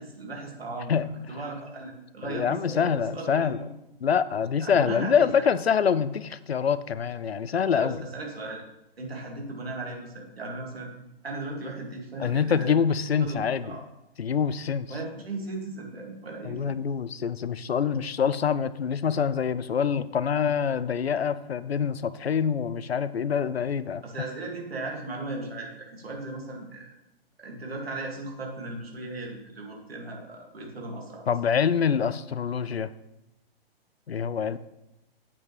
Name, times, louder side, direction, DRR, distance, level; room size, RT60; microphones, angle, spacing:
voice 1, 0.0-3.7 4.6-5.3 7.7-8.6 9.0-10.9 11.2-12.7 13.2-13.8 14.9-16.8 24.0-26.9 27.4-31.3, right 2 dB, 75° right, 0 dB, 2.6 m, -37 dB
voice 2, 2.2-3.6 4.0-8.0 12.2-13.6 14.2-14.9 16.4-24.0 31.3-32.9 34.1-34.6, left 7 dB, 80° left, 15 dB, 0.6 m, -25 dB
8.5 x 8.2 x 3.5 m, 0.92 s
figure-of-eight pair, 120°, 31 cm